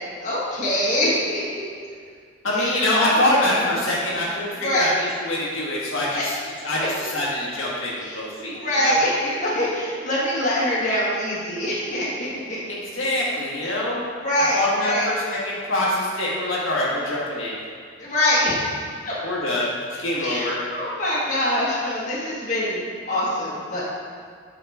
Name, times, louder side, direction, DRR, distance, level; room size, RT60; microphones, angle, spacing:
voice 1, 0.2-1.4 2.5-2.7 3.1-3.2 3.6-3.8 4.6-4.9 6.1-6.3 8.5-12.6 14.2-15.1 18.0-18.7 19.0-19.1 20.2-22.8 23.1-23.8, left 1 dB, 40° left, -7 dB, 1.6 m, -24 dB
voice 2, 2.4-9.0 12.7-14.1 14.5-17.6 19.2-20.6, left 1 dB, 85° left, -6 dB, 1.6 m, -25 dB
7.9 x 4.9 x 3.5 m, 2.1 s
head